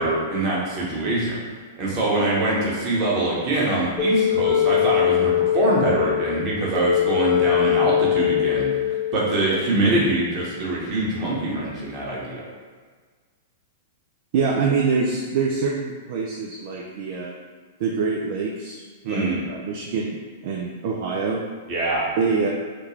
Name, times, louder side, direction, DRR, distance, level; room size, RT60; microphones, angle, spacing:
voice 1, 0.0-12.4 19.0-19.4 21.7-22.1, right 2 dB, 40° right, -5 dB, 1.2 m, -24 dB
sound 1, 4.0-9.5, left 10 dB, 15° left, 1.0 m, -21 dB
voice 2, 14.3-17.4 17.8-20.2 20.4-21.4 22.2-22.5, right 5 dB, 55° right, -1 dB, 0.4 m, -25 dB
3.6 x 2.3 x 3.2 m, 1.5 s
hypercardioid pair, 110°, 0 cm